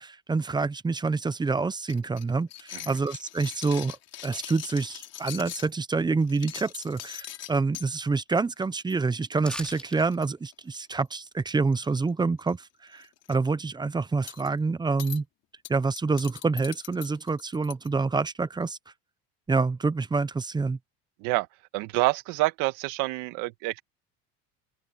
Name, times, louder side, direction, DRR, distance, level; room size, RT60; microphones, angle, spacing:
voice 1, 0.0-4.0 4.2-15.2 15.7-18.8 19.5-20.8, right 4 dB, 15° right, 0.8 m, -27 dB
sound 1, 1.9-5.7 6.2-7.9 8.4-8.6 8.9-9.0 9.3-9.4 9.6-11.0 11.7-12.1 12.4-12.5 12.9-13.3 14.3-14.5 15.0-15.2 15.6-17.9, left 13 dB, 55° left, 3.7 m, -41 dB
sound 2, 9.4-10.0 10.3-10.4, left 1 dB, 5° left, 3.2 m, -38 dB
voice 2, 21.7-23.8, right 20 dB, 75° right, 1.9 m, -27 dB
open air
supercardioid pair, 115°, 31 cm